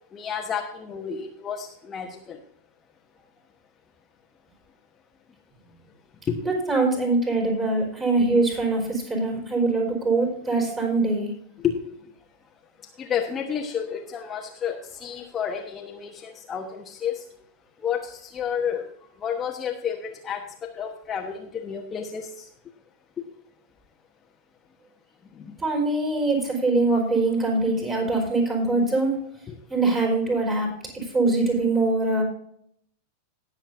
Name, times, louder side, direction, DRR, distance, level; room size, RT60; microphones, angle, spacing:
voice 1, 0.1-2.4 6.3-6.4 11.6-11.7 13.0-17.2 17.8-18.9 19.2-20.4 20.8-22.5 25.4-25.5 29.5-29.6, left 8 dB, 20° left, 2 dB, 1.1 m, -30 dB
voice 2, 6.4-11.3 25.6-29.1 29.7-30.7 31.1-32.2, right 3 dB, 20° right, 0 dB, 4.7 m, -23 dB
18.5 x 7.4 x 2.6 m, 0.69 s
figure-of-eight pair, 90°, 0 cm